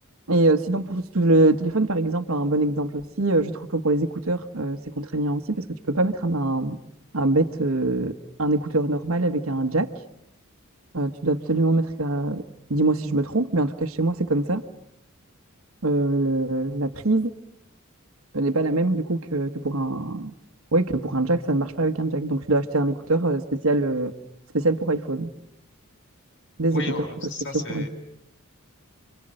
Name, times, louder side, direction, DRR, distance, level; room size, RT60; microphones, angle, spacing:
voice 1, 0.3-6.8 7.1-9.9 10.9-12.4 12.7-14.6 15.8-17.3 18.3-20.3 20.7-24.1 24.5-25.3 26.6-26.8 27.7-27.8, right 2 dB, 75° right, 6 dB, 1.2 m, -23 dB
voice 2, 26.7-27.9, left 2 dB, 65° left, 5 dB, 5.4 m, -33 dB
30.0 x 24.5 x 7.7 m, 0.80 s
head